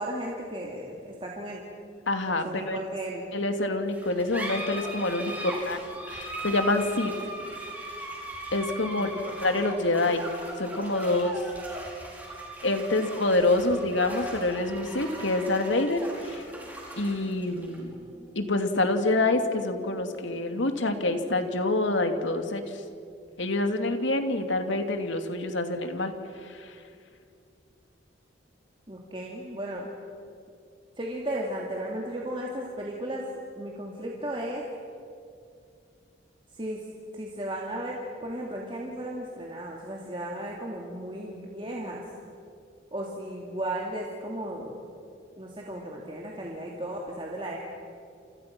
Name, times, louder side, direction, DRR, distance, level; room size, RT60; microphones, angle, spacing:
voice 1, 0.0-1.6 2.4-3.2 5.0-5.5 8.8-9.1 12.9-13.0 28.9-29.9 31.0-33.2 33.5-34.6 36.5-36.8 37.1-42.0 42.9-44.7 45.4-47.6, right 1 dB, 25° right, -2 dB, 2.6 m, -35 dB
voice 2, 2.1-2.8 3.3-5.8 6.1-7.1 8.5-10.2 10.6-11.4 12.6-16.4 17.0-17.9 18.4-22.8 23.4-26.1 26.4-26.8, left 2 dB, 80° left, 6 dB, 2.5 m, -27 dB
sound 1, 3.9-20.9, right 1 dB, 10° right, 5.5 m, -39 dB
29.5 x 28.5 x 6.1 m, 2.4 s
head